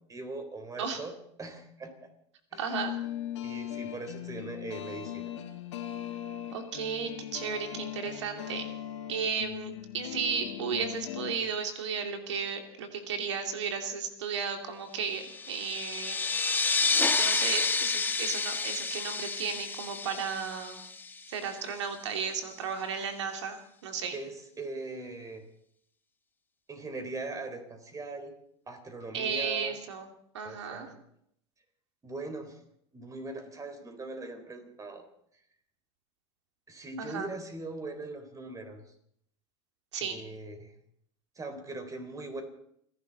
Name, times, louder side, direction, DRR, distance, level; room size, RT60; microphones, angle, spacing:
voice 1, 0.1-1.1 1.4-2.1 2.5-2.8 3.4-5.3 24.1-25.4 26.7-28.3 28.7-29.8 30.4-30.9 32.0-32.6 32.9-35.0 36.7-38.8 40.0-40.7 41.4-42.4, right 2 dB, 25° right, 6 dB, 3.9 m, -40 dB
sound 1, 2.5-11.3, left 11 dB, 85° left, 1.9 m, -39 dB
voice 2, 2.6-3.0 6.5-8.7 9.1-16.2 16.5-20.8 21.3-24.2 29.1-30.1 30.3-30.9 37.0-37.3 39.9-40.2, right 6 dB, 90° right, 5 dB, 2.6 m, -34 dB
sound 2, 15.2-21.4, left 4 dB, 15° left, 1.2 m, -30 dB
29.5 x 11.5 x 4.1 m, 0.70 s
hypercardioid pair, 100°, 14 cm